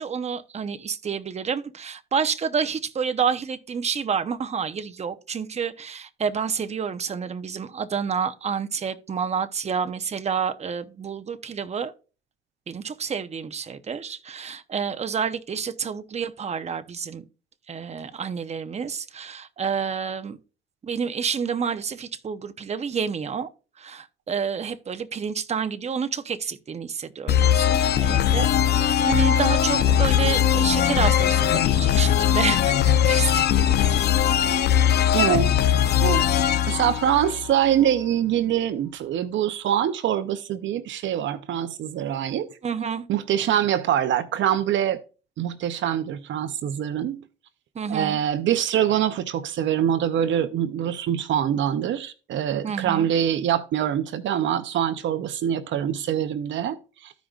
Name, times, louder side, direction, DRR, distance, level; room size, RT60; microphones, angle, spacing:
voice 1, 0.0-11.9 12.7-17.2 17.7-20.4 20.8-23.5 23.8-33.8 42.6-43.1 47.8-48.2 52.6-53.1, right 6 dB, 35° right, 0.7 m, -29 dB
sound 1, 27.3-37.9, left 10 dB, 55° left, 0.6 m, -20 dB
voice 2, 35.1-35.5 36.0-42.5 43.1-45.0 45.4-47.3 47.9-57.1, right 10 dB, 70° right, 0.6 m, -24 dB
14.0 x 5.1 x 2.4 m
cardioid pair, 90°, 20 cm